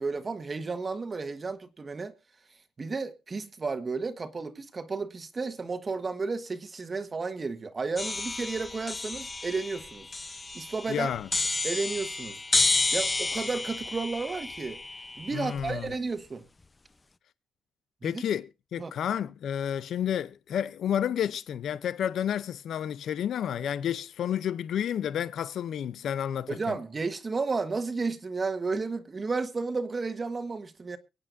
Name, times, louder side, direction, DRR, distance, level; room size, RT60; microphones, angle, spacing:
voice 1, 0.0-2.1 2.8-10.1 10.5-11.1 11.6-12.4 12.9-14.8 15.2-16.4 18.0-18.2 18.8-18.9 26.5-31.0, right 4 dB, 30° right, 1.5 m, -32 dB
sound 1, 8.0-15.9, left 3 dB, 20° left, 0.6 m, -31 dB
voice 2, 10.9-11.3 15.3-15.9 18.0-26.8, left 9 dB, 65° left, 0.5 m, -31 dB
24.0 x 8.8 x 2.6 m
cardioid pair, 90°, 0 cm